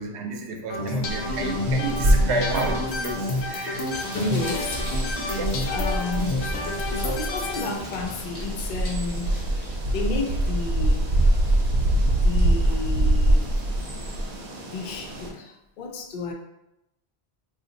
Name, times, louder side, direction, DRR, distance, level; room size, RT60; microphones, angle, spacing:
voice 1, 0.0-3.9 5.2-5.4, right 3 dB, 85° right, 2 dB, 0.9 m, -31 dB
sound 1, 0.7-7.7, left 2 dB, 85° left, 0.9 m, -29 dB
sound 2, 1.1-15.3, right 1 dB, 55° right, 0.4 m, -25 dB
sound 3, 3.9-15.3, equal, 25° left, 1.1 m, -40 dB
voice 2, 4.1-4.8 5.7-6.4 6.9-9.5 9.9-11.1 12.1-13.5 14.7-16.3, left 3 dB, 55° left, 2 dB, 0.6 m, -32 dB
2.6 x 2.5 x 3.9 m, 0.87 s
omnidirectional pair, 1.1 m